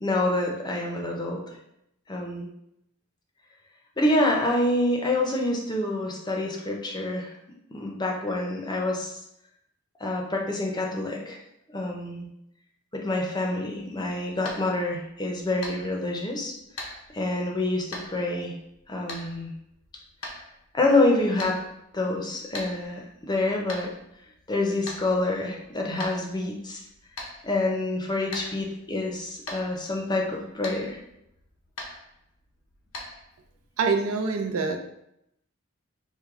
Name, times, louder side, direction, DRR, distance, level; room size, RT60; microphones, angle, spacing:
voice 1, 0.0-1.4 2.1-2.5 4.0-7.3 7.7-9.2 10.0-11.4 11.7-12.3 12.9-16.5 17.1-18.5 18.9-19.5 20.7-21.6 21.9-23.9 24.5-26.8 27.4-31.0, left 2 dB, 20° left, 0 dB, 0.5 m, -27 dB
sound 1, 13.8-33.6, left 2 dB, 85° left, 0.7 m, -43 dB
voice 2, 33.8-34.8, right 4 dB, 90° right, 5 dB, 0.5 m, -25 dB
4.6 x 2.1 x 3.6 m, 0.80 s
head